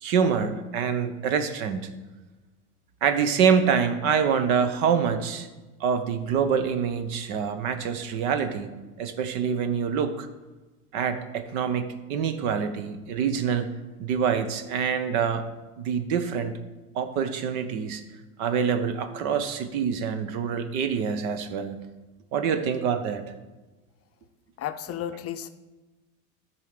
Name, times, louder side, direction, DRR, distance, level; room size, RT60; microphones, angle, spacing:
voice 1, 0.0-1.9 3.0-5.5 5.8-8.7 9.0-10.3 10.9-13.7 14.0-15.4 15.8-16.5 16.9-18.0 18.4-21.8 22.3-23.3, right 7 dB, 70° right, 10 dB, 1.2 m, -26 dB
voice 2, 24.6-25.5, left 10 dB, 35° left, 9 dB, 0.5 m, -33 dB
11.0 x 4.7 x 6.7 m, 1.2 s
hypercardioid pair, 95°, 44 cm